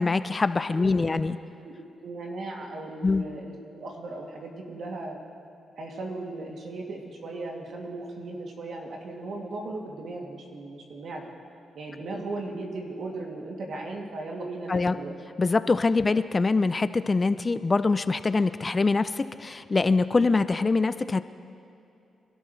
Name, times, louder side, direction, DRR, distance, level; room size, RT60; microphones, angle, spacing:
voice 1, 0.0-1.4 3.0-3.2 14.7-15.0 15.4-21.2, left 3 dB, 30° left, 13 dB, 0.5 m, -24 dB
voice 2, 0.7-1.2 1.6-1.7 2.0-5.2 5.8-11.3 11.7-15.1, right 2 dB, 70° right, -1 dB, 2.6 m, -37 dB
26.0 x 12.5 x 3.3 m, 2.7 s
cardioid pair, 75°, 0 cm